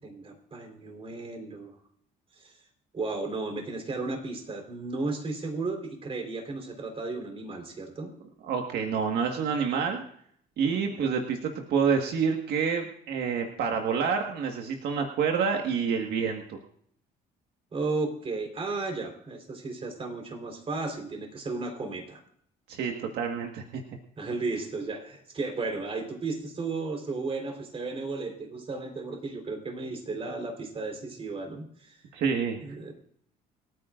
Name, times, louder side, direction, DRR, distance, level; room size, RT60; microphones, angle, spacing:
voice 1, 0.0-1.7 2.3-2.5 2.9-8.1 10.7-11.1 17.7-22.2 24.2-32.0 32.6-32.9, right 3 dB, 35° right, 3 dB, 4.0 m, -34 dB
voice 2, 8.4-10.0 10.6-16.6 22.7-23.8 32.1-32.6, right 6 dB, 70° right, 3 dB, 1.6 m, -28 dB
28.5 x 9.5 x 2.5 m, 0.65 s
cardioid pair, 110°, 17 cm